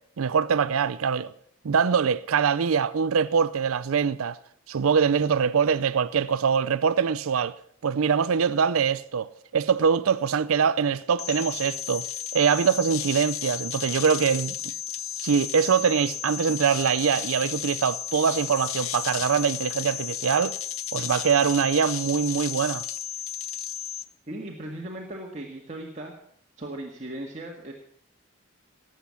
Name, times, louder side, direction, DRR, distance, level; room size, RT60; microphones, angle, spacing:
voice 1, 0.2-1.3 1.6-4.4 4.7-7.5 7.8-12.1 12.3-14.6 15.2-20.5 20.9-22.8, right 6 dB, 85° right, 0.5 m, -23 dB
sound 1, 11.2-24.0, left 10 dB, 80° left, 0.9 m, -33 dB
voice 2, 24.3-26.1 26.6-27.7, right 1 dB, 35° right, 1.9 m, -37 dB
18.5 x 8.2 x 7.0 m
head